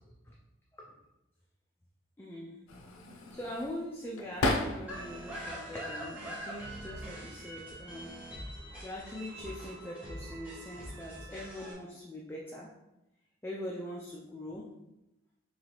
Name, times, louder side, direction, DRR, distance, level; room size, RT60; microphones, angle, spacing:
voice 1, 2.2-2.5 3.3-8.1 8.8-12.7 13.4-14.6, left 1 dB, 10° left, -3 dB, 0.3 m, -42 dB
sound 1, 2.7-5.2 5.6-6.4 7.4-7.7 8.0-8.8, left 2 dB, 80° left, 0.5 m, -35 dB
sound 2, 4.9-11.7, right 1 dB, 5° right, 0.9 m, -43 dB
3.2 x 3.1 x 3.9 m, 0.92 s
head